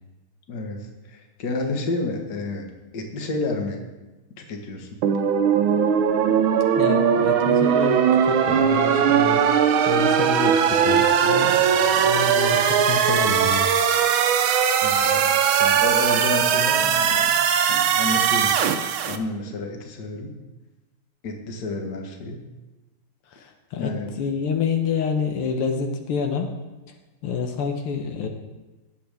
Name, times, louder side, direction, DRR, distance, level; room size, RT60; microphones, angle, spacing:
voice 1, 0.5-3.8 4.4-5.0 14.8-17.3 17.7-18.7 19.1-20.3 21.2-22.4 23.8-24.1, left 3 dB, 50° left, 3 dB, 1.9 m, -30 dB
sound 1, 5.0-19.2, right 8 dB, 75° right, 1.5 m, -19 dB
voice 2, 6.8-13.7 23.3-26.5 27.2-28.3, left 5 dB, 85° left, 5 dB, 1.8 m, -28 dB
18.5 x 7.8 x 3.5 m, 1.1 s
omnidirectional pair, 2.4 m